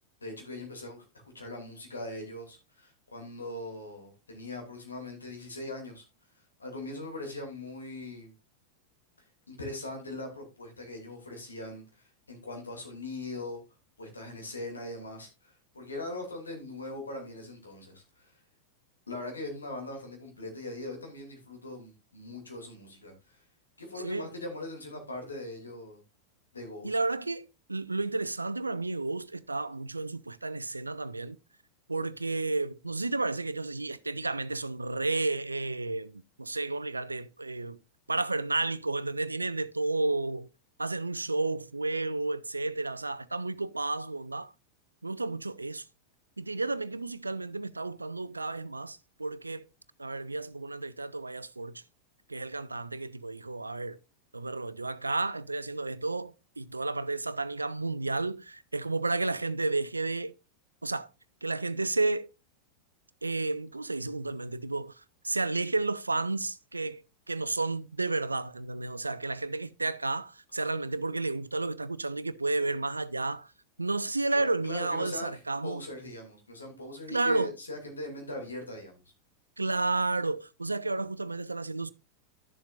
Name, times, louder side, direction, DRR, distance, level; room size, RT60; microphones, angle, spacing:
voice 1, 0.2-1.1 1.3-6.0 6.6-8.3 9.5-13.6 14.0-18.4 19.1-23.4 23.8-26.0 26.5-27.0 74.3-79.0, left 2 dB, 75° left, 2.7 m, -41 dB
voice 2, 26.8-31.4 31.9-37.8 38.1-40.5 40.8-44.5 45.0-45.8 46.4-49.7 50.0-51.8 52.3-54.0 54.3-60.3 60.8-61.1 61.4-62.3 63.2-67.0 67.3-73.5 73.8-75.8 77.1-77.5 79.6-81.9, right 3 dB, 80° right, 0.4 m, -32 dB
12.0 x 7.2 x 2.5 m
figure-of-eight pair, 90°, 0 cm